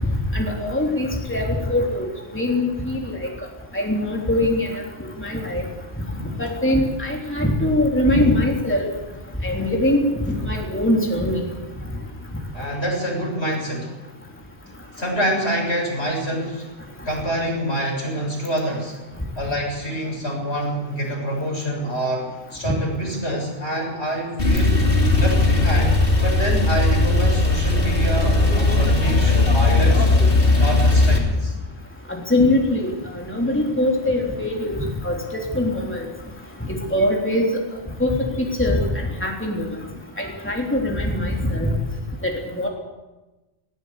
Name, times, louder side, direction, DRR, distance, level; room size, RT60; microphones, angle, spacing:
voice 1, 0.3-2.1 2.3-3.3 3.7-4.8 5.2-5.7 6.4-8.9 9.4-10.0 10.4-11.5 22.7-22.8 32.3-35.2 35.5-36.1 36.7-37.6 38.0-39.7 40.2-41.7 42.2-42.7, left 1 dB, 10° left, 0 dB, 3.5 m, -22 dB
voice 2, 12.5-14.0 14.9-16.6 17.0-18.9 19.4-24.8 25.1-30.1 30.5-31.5, equal, 75° left, -1 dB, 8.2 m, -26 dB
Male speech man speaking / Car / Idling, 24.4-31.2, left 2 dB, 60° left, 3.9 m, -17 dB
19.5 x 19.5 x 8.4 m, 1.1 s
omnidirectional pair, 1.1 m